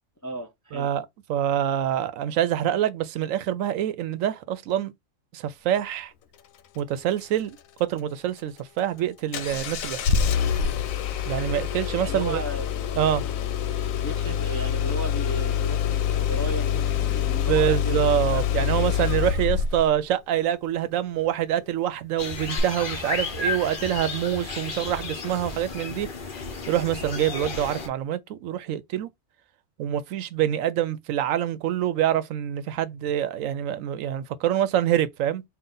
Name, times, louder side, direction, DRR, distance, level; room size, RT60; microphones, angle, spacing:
voice 1, 0.2-0.9 11.9-12.7 14.0-18.4 18.9-19.3, right 1 dB, 20° left, 0.4 m, -35 dB
voice 2, 0.7-1.0 1.3-4.9 5.3-6.1 6.8-10.1 11.3-12.4 13.0-13.2 17.5-26.1 26.7-29.1 29.8-35.4, right 11 dB, 75° right, 1.0 m, -26 dB
Engine starting, 9.3-19.9 22.6-22.7, left 8 dB, 80° left, 1.0 m, -26 dB
sound 1, 22.2-27.9, left 4 dB, 45° left, 0.8 m, -33 dB
3.8 x 2.4 x 3.8 m
omnidirectional pair, 1.4 m